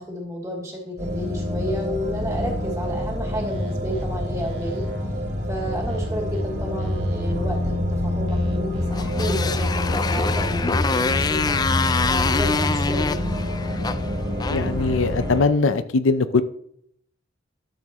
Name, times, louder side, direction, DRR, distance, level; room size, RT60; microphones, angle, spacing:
voice 1, 0.0-4.8 5.5-7.7 8.0-11.6 12.1-13.4, equal, 15° right, -2 dB, 2.6 m, -31 dB
sound 1, 1.0-15.4, left 1 dB, 60° right, 3.3 m, -28 dB
sound 2, 3.5-4.0 4.4-6.4 6.8-8.9 9.2-11.2 11.6-13.0, equal, 75° right, 1.7 m, -29 dB
Motorcycle, 8.9-15.4, left 4 dB, 20° left, 0.3 m, -26 dB
voice 2, 14.5-16.4, left 3 dB, 75° left, 12 dB, 0.6 m, -21 dB
12.0 x 7.0 x 3.0 m, 0.69 s
head